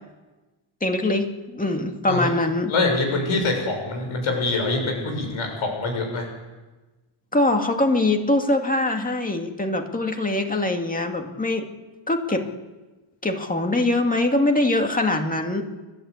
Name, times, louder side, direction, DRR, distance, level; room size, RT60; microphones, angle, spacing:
voice 1, 0.8-2.7 7.3-11.7 12.1-12.5 13.2-15.6, left 2 dB, 15° left, 4 dB, 2.3 m, -23 dB
voice 2, 2.7-6.3, left 3 dB, 80° left, 3 dB, 6.8 m, -24 dB
29.5 x 12.5 x 8.3 m, 1.2 s
cardioid pair, 115°, 48 cm